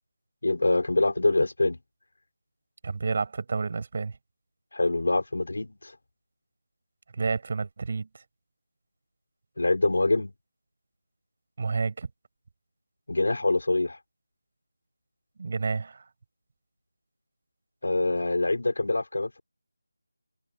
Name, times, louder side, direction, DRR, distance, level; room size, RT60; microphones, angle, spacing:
voice 1, 0.4-1.8 4.7-5.9 9.6-10.3 13.1-14.0 17.8-19.4, left 2 dB, 70° left, 3.9 m, -25 dB
voice 2, 2.8-4.2 7.1-8.2 11.6-12.1 15.4-16.1, right 4 dB, 40° right, 5.6 m, -30 dB
figure-of-eight pair, 170°, 0 cm